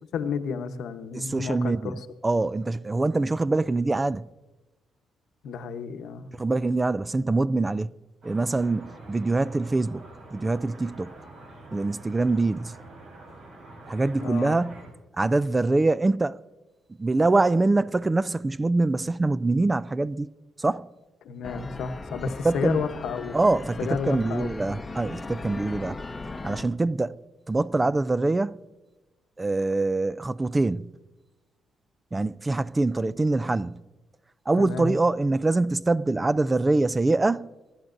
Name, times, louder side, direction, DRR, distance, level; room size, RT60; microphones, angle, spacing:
voice 1, 0.1-2.0 5.4-6.3 14.2-14.6 21.2-23.4 23.8-24.5 34.6-34.9, left 6 dB, 75° left, 0.9 m, -31 dB
voice 2, 1.1-4.3 6.4-7.9 8.2-10.0 10.3-11.1 11.7-12.7 13.9-14.8 15.2-16.4 17.0-20.3 20.6-20.9 22.4-22.8 23.3-26.0 26.4-27.2 27.5-28.6 29.4-30.9 32.1-33.8 34.5-37.5, right 2 dB, 20° right, 0.4 m, -24 dB
sound 1, 8.2-14.9, right 2 dB, 70° right, 4.2 m, -46 dB
sound 2, 21.4-26.6, left 3 dB, 20° left, 0.8 m, -38 dB
26.0 x 11.0 x 2.6 m
cardioid pair, 90°, 0 cm